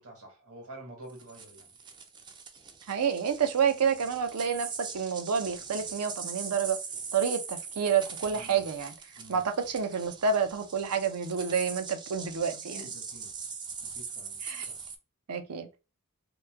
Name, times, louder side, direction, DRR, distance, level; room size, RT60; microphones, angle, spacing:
voice 1, 0.0-1.7 8.3-8.6 9.2-9.4 12.5-13.5 13.8-14.4 14.7-14.8, right 1 dB, 70° right, 1.5 m, -49 dB
sound 1, 1.1-15.0, right 5 dB, 20° right, 0.3 m, -41 dB
voice 2, 2.9-6.8 7.1-8.9 9.3-12.9 14.4-14.7 15.3-15.7, right 6 dB, 85° right, 0.5 m, -29 dB
3.0 x 2.2 x 3.4 m
head